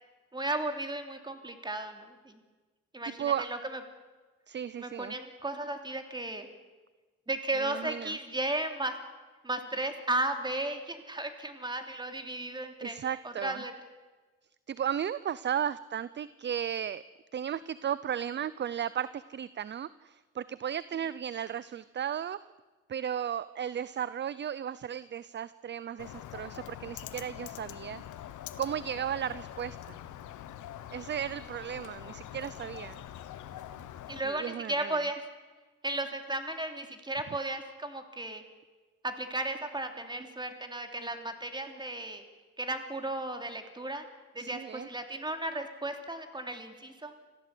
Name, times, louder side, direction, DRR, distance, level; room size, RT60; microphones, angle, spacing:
voice 1, 0.3-2.4 2.9-3.8 4.8-6.5 7.3-9.0 9.4-13.0 13.2-13.7 34.1-35.2 35.8-38.4 39.0-42.2 42.6-44.0 44.3-47.1, right 2 dB, 15° right, 6 dB, 3.1 m, -35 dB
voice 2, 3.0-3.5 4.5-5.1 7.6-8.2 12.8-13.6 14.7-17.0 17.3-22.4 22.9-28.0 28.6-30.0 30.9-33.0 34.2-35.0 44.4-44.9, right 9 dB, 35° right, 17 dB, 0.6 m, -35 dB
Bird, 26.0-34.2, left 11 dB, 80° left, 1.3 m, -44 dB
25.0 x 15.5 x 8.5 m, 1.3 s
cardioid pair, 90°, 30 cm